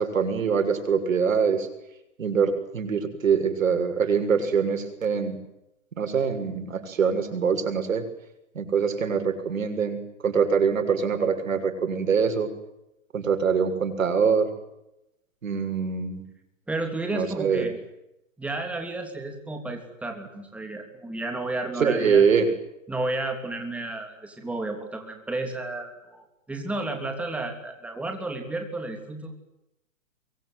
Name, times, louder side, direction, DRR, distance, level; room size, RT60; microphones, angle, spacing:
voice 1, 0.0-1.7 2.2-5.4 6.0-8.1 8.5-12.5 13.1-14.5 15.4-16.2 17.1-17.7 21.8-22.5, right 6 dB, 85° right, 7 dB, 6.8 m, -24 dB
voice 2, 16.7-17.8 18.4-22.3 22.9-29.3, right 2 dB, 5° right, 4 dB, 3.1 m, -32 dB
24.0 x 24.0 x 9.5 m, 0.87 s
hypercardioid pair, 165°, 39 cm